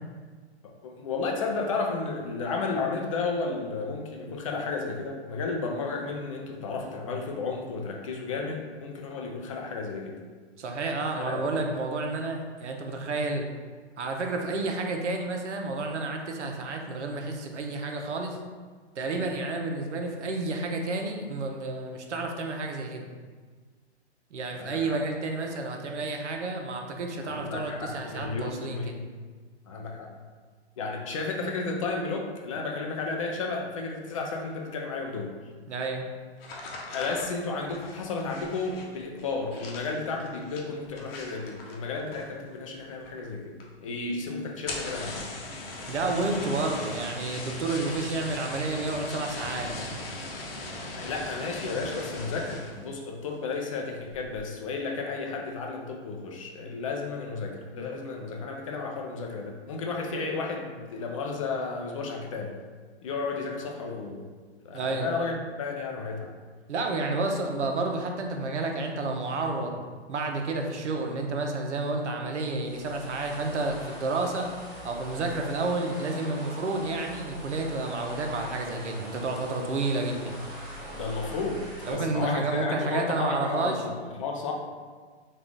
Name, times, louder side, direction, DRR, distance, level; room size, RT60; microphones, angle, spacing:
voice 1, 0.6-10.2 11.2-11.7 19.0-19.3 24.6-25.0 27.2-29.0 29.7-30.1 30.8-35.3 36.9-43.5 43.8-45.3 51.0-62.5 63.0-64.2 64.6-66.3 80.9-84.5, left 4 dB, 30° left, 1 dB, 0.4 m, -33 dB
voice 2, 10.6-13.5 14.0-18.4 19.0-23.1 24.3-29.0 35.7-36.0 45.9-49.9 64.7-65.1 66.7-69.8 70.1-74.5 74.8-80.4 81.9-83.8, right 3 dB, 90° right, 3 dB, 0.7 m, -30 dB
sound 1, 36.4-42.5 42.8-43.3 43.6-43.7 44.0-44.1 44.5-52.9 53.3-53.7 54.1-54.5, left 2 dB, 60° left, 0.8 m, -39 dB
sound 2, 72.6-81.9, right 1 dB, ahead, 1.0 m, -42 dB
3.7 x 2.4 x 3.4 m, 1.5 s
hypercardioid pair, 135°, 34 cm